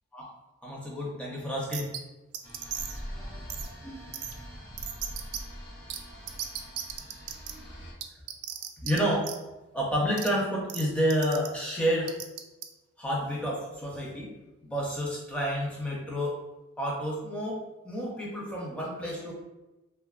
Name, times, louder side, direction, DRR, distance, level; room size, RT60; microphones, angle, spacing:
voice 1, 0.6-1.9 3.1-4.1 7.5-7.8 8.8-9.3 9.7-12.2 13.0-14.3 14.6-16.4 16.8-19.3, equal, 5° left, -4 dB, 0.5 m, -30 dB
sound 1, 1.7-2.0 2.3-3.0 3.5-3.7 4.1-4.3 4.8-5.4 5.9-6.0 6.3-7.5 8.0-9.0 9.2-9.4 10.2-10.3 10.7-10.8 11.1-11.5 12.1-12.6, right 10 dB, 90° right, 0.3 m, -35 dB
sound 2, 2.4-7.9, equal, 45° left, 1.0 m, -43 dB
3.1 x 2.2 x 2.3 m, 1.1 s
head